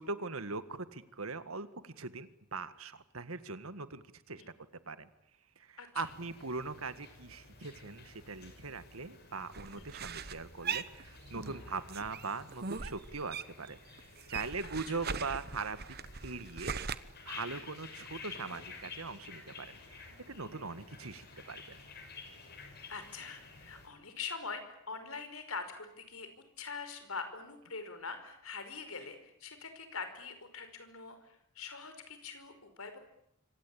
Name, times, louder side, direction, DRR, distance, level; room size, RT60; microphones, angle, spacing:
voice 1, 0.0-4.4 4.9-5.1 5.6-14.0 14.3-16.0 16.2-16.7 17.2-21.8, right 4 dB, 75° right, 12 dB, 1.8 m, -41 dB
sound 1, 6.0-23.9, left 4 dB, 50° left, 6.4 m, -52 dB
sound 2, 9.5-11.6 11.9-13.7 14.0-17.0, right 6 dB, 45° right, 1.1 m, -40 dB
voice 2, 20.4-20.8 22.9-26.3 26.6-33.0, left 5 dB, 75° left, 9 dB, 5.3 m, -44 dB
26.5 x 25.5 x 8.8 m, 0.76 s
head